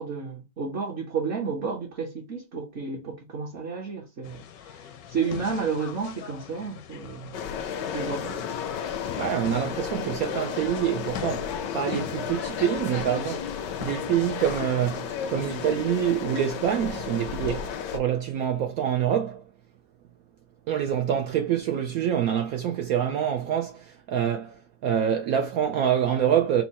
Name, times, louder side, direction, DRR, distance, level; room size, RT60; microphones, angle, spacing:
voice 1, 0.0-7.5 7.9-8.4, right 5 dB, 50° right, 1.0 m, -32 dB
sound 1, 4.2-15.0, left 9 dB, 70° left, 1.0 m, -41 dB
sound 2, 7.3-18.0, left 7 dB, 85° left, 1.3 m, -33 dB
voice 2, 9.2-19.4 20.7-26.6, right 9 dB, 70° right, 0.9 m, -26 dB
4.5 x 2.2 x 4.2 m
omnidirectional pair, 1.9 m